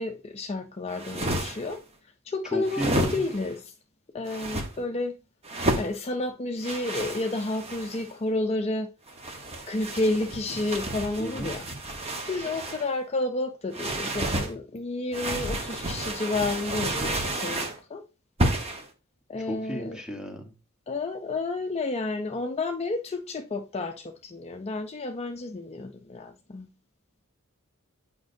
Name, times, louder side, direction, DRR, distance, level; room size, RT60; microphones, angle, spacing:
voice 1, 0.0-1.8 2.2-3.7 4.1-5.2 5.8-8.9 9.7-11.7 12.2-18.0 19.3-20.0 20.9-26.7, left 2 dB, 30° left, 0.4 m, -31 dB
sound 1, 0.9-1.8 2.6-3.5 4.3-4.7 5.4-5.9 6.6-8.1 9.1-12.9 13.7-14.5 15.1-17.8 18.4-18.9, right 1 dB, 30° right, 1.1 m, -31 dB
voice 2, 2.5-3.3 11.2-11.5 19.4-20.5, equal, 5° right, 1.1 m, -34 dB
8.5 x 5.2 x 2.6 m
head